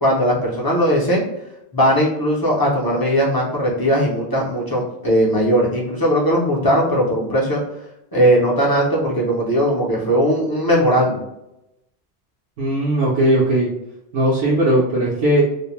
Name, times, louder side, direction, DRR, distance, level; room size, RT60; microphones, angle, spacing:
voice 1, 0.0-1.3 1.7-7.6 8.1-11.2, equal, 35° left, -4 dB, 0.3 m, -18 dB
voice 2, 12.6-13.7 14.1-15.4, right 1 dB, 85° right, -6 dB, 1.0 m, -18 dB
2.6 x 2.1 x 2.9 m, 0.87 s
omnidirectional pair, 1.2 m